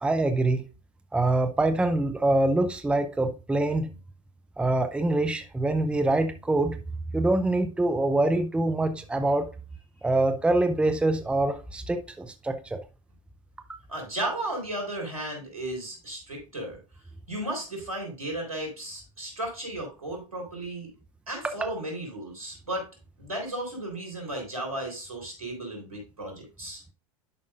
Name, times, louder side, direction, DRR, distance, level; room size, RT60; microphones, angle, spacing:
voice 1, 0.0-0.6 1.1-3.9 4.6-6.8 7.1-9.5 10.0-12.8 21.4-21.7, right 2 dB, 5° right, 0.7 m, -25 dB
voice 2, 13.9-16.8 17.3-20.9 21.3-22.9 23.2-26.8, right 1 dB, 90° right, 3.8 m, -34 dB
11.0 x 5.3 x 2.5 m
hypercardioid pair, 85°, 18 cm